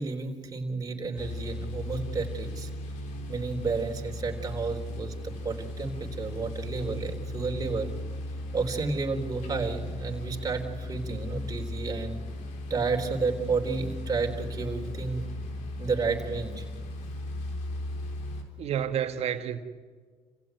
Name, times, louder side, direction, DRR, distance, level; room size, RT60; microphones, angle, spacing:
voice 1, 0.0-2.7 3.3-7.9 8.5-12.2 12.7-15.2 15.8-16.7, right 4 dB, 30° right, 4.1 m, -31 dB
sound 1, 1.2-18.4, left 1 dB, 85° left, 3.5 m, -37 dB
voice 2, 18.6-19.6, right 9 dB, 60° right, 2.0 m, -29 dB
28.5 x 16.0 x 9.5 m
cardioid pair, 85°, 12 cm